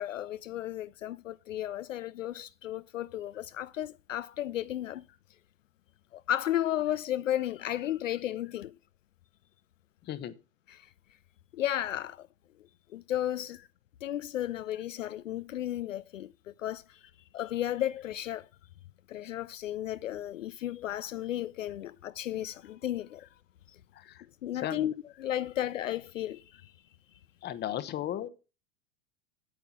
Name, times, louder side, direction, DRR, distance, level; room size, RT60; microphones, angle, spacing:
voice 1, 0.0-5.0 6.1-8.7 10.8-10.9 11.5-12.3 12.9-13.6 14.0-17.0 17.3-18.5 19.1-23.3 24.4-24.9 25.2-26.7, left 12 dB, 70° left, 0.5 m, -34 dB
voice 2, 10.0-10.4 23.9-24.3 24.5-24.9 27.4-28.3, left 11 dB, 25° left, 1.0 m, -35 dB
9.2 x 8.2 x 5.8 m
figure-of-eight pair, 90°, 40 cm